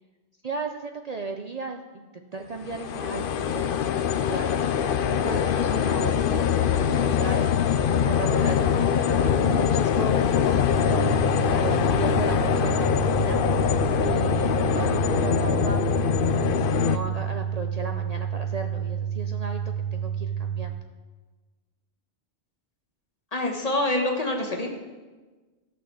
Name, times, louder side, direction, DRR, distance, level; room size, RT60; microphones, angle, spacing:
voice 1, 0.4-13.4 14.0-16.1 16.4-20.8, right 4 dB, 45° right, 4 dB, 0.6 m, -36 dB
sound 1, 2.6-17.0, left 8 dB, 60° left, 0.7 m, -23 dB
sound 2, 10.7-20.7, right 8 dB, 10° left, 0.9 m, -30 dB
voice 2, 23.3-24.7, left 1 dB, 35° left, 1 dB, 1.5 m, -26 dB
14.5 x 6.1 x 6.2 m, 1.3 s
omnidirectional pair, 1.1 m